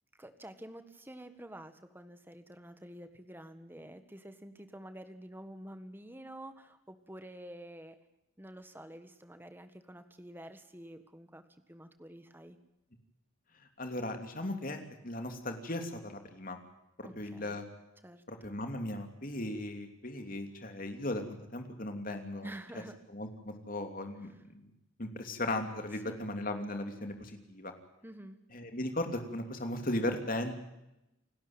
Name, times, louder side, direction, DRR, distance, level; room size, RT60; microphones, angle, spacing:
voice 1, 0.2-7.9 8.4-11.4 11.7-12.6 17.0-17.6 18.0-18.2 22.4-23.0 26.0-26.3 28.0-28.4, right 1 dB, 10° right, 9 dB, 1.5 m, -49 dB
voice 2, 13.8-16.6 17.0-17.6 18.3-22.5 23.1-24.6 25.0-27.7 28.5-30.6, left 1 dB, 45° left, 5 dB, 3.0 m, -37 dB
28.5 x 12.5 x 8.9 m, 0.89 s
head